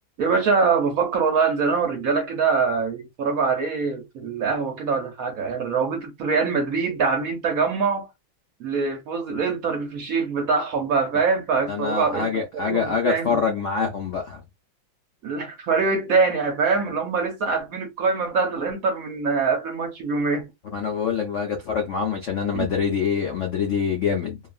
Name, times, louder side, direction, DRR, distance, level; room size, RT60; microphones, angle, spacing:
voice 1, 0.2-8.1 8.6-13.4 15.2-20.5 22.5-22.7, right 5 dB, 65° right, 0.9 m, -24 dB
voice 2, 11.7-14.4 20.7-24.4, left 6 dB, 85° left, 0.6 m, -25 dB
2.9 x 2.3 x 2.4 m
omnidirectional pair, 2.0 m